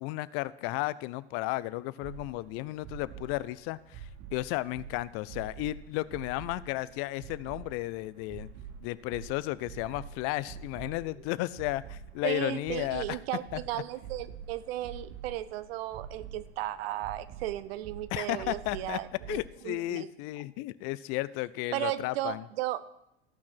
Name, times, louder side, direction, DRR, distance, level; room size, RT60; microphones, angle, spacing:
voice 1, 0.0-8.5 8.8-13.2 13.5-13.6 18.1-19.0 19.3-22.4, left 18 dB, 40° left, 18 dB, 0.5 m, -34 dB
sound 1, 2.0-19.5, right 6 dB, 40° right, 1.0 m, -47 dB
voice 2, 12.2-20.1 21.7-22.8, right 14 dB, 60° right, 15 dB, 0.8 m, -35 dB
14.0 x 5.9 x 6.0 m, 0.83 s
figure-of-eight pair, 85°, 35 cm